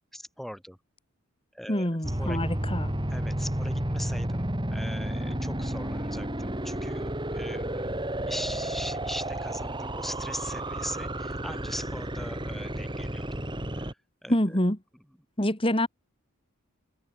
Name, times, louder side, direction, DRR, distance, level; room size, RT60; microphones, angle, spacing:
voice 1, 0.1-0.8 1.5-2.4 3.1-7.9 8.3-14.0 14.2-14.3, equal, ahead, 5.6 m, -40 dB
voice 2, 1.7-2.9 14.3-14.8 15.4-15.9, left 1 dB, 25° left, 3.4 m, -26 dB
sound 1, 2.0-13.9, right 1 dB, 20° right, 3.0 m, -32 dB
head